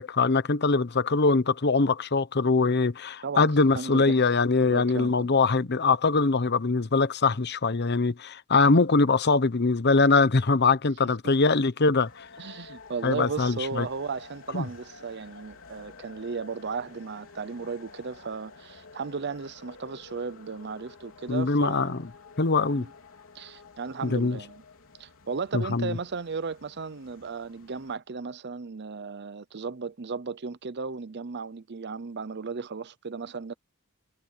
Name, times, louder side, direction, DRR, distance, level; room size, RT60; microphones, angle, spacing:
voice 1, 0.0-12.2 13.0-13.9 14.5-14.6 21.3-22.0 22.4-22.8 24.0-24.4 25.5-26.0, left 3 dB, 50° left, 0.9 m, -23 dB
voice 2, 3.8-4.3 4.6-5.3 12.4-22.0 22.7-22.9 23.3-24.6 25.0-33.5, right 5 dB, 55° right, 0.7 m, -35 dB
sound 1, 12.0-28.0, left 4 dB, 70° left, 3.9 m, -50 dB
head